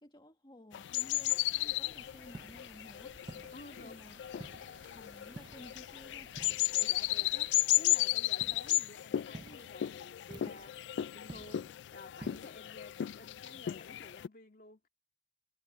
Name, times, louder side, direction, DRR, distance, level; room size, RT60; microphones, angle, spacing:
voice 1, 0.0-3.2 3.7-4.2 4.9-6.4, left 1 dB, 25° left, 1.9 m, -55 dB
sound 1, 0.7-14.3, left 15 dB, 80° left, 0.3 m, -34 dB
sound 2, 1.5-7.8, right 3 dB, 50° right, 2.4 m, -60 dB
sound 3, 2.3-2.7 3.3-3.8 4.4-4.8 5.4-5.8 6.4-6.9 8.4-8.8 9.3-9.8 10.3-10.8 11.3-11.7 12.2-12.6, right 2 dB, 25° right, 0.5 m, -50 dB
voice 2, 3.5-4.0 6.7-14.8, left 2 dB, 55° left, 2.8 m, -53 dB
head